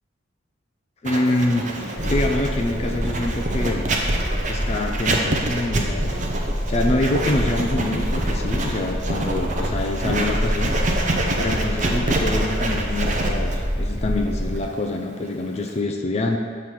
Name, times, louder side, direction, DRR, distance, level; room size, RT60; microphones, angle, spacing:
voice 1, 1.0-3.9 4.5-6.1 6.7-10.7 11.4-16.4, left 2 dB, 30° left, 3 dB, 0.4 m, -25 dB
Writing, 1.1-15.8, right 2 dB, 40° right, 0.6 m, -27 dB
sound 1, 2.0-14.6, equal, 10° left, 0.8 m, -26 dB
6.9 x 3.2 x 5.8 m, 2.1 s
head